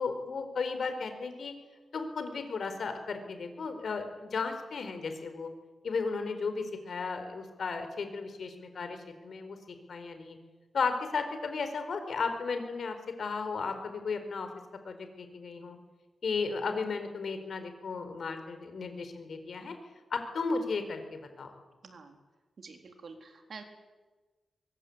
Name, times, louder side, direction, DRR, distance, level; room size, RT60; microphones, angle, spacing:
voice 1, 0.0-1.5 1.9-5.5 5.8-9.6 9.9-10.4 10.7-14.5 14.8-15.8 16.2-19.7 20.1-21.5, left 4 dB, 65° left, 8 dB, 4.5 m, -34 dB
voice 2, 21.8-22.2 22.6-23.6, right 4 dB, 60° right, 5 dB, 3.8 m, -48 dB
23.5 x 23.0 x 8.7 m, 1.3 s
wide cardioid pair, 115°, 0 cm